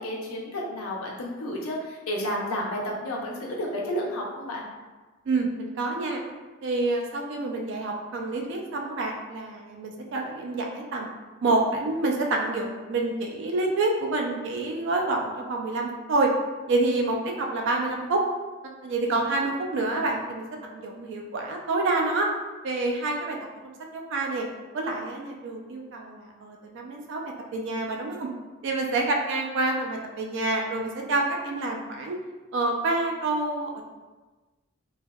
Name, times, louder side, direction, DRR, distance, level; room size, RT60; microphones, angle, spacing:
voice 1, 0.0-4.6 19.0-19.2, equal, 85° left, -2 dB, 0.6 m, -31 dB
voice 2, 5.3-6.2 6.6-11.1 11.4-16.3 16.7-18.2 18.8-22.3 22.6-23.4 23.6-24.5 24.7-27.2 27.5-28.3 28.6-32.2 32.5-33.8, right 2 dB, 60° right, 1 dB, 0.3 m, -27 dB
3.2 x 2.0 x 2.2 m, 1.3 s
head